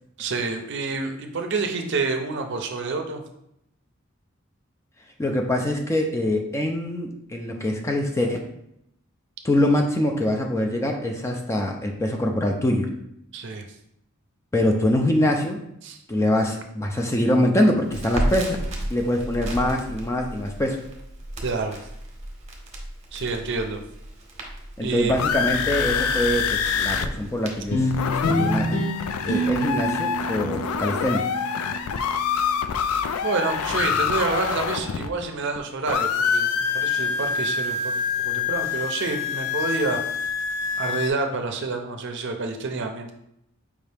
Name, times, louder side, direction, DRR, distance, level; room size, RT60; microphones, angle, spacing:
voice 1, 0.2-3.2 13.3-13.7 15.8-16.0 21.4-21.8 23.1-23.8 24.8-25.3 33.2-37.9 38.2-40.4 40.8-43.1, right 4 dB, 55° right, 5 dB, 0.5 m, -28 dB
voice 2, 5.2-8.4 9.4-12.9 14.5-15.6 16.1-18.5 18.9-20.8 24.8-28.7 29.2-31.3, left 1 dB, 15° left, 2 dB, 0.4 m, -24 dB
Crackle, 17.8-28.3, right 1 dB, 30° right, 0.8 m, -34 dB
sound 1, 24.8-27.1 27.3-27.4 27.7-35.6 35.9-41.1, left 6 dB, 85° left, 0.3 m, -26 dB
sound 2, 27.7-32.3, right 1 dB, 65° left, 1.0 m, -27 dB
4.8 x 2.7 x 3.4 m, 0.77 s
head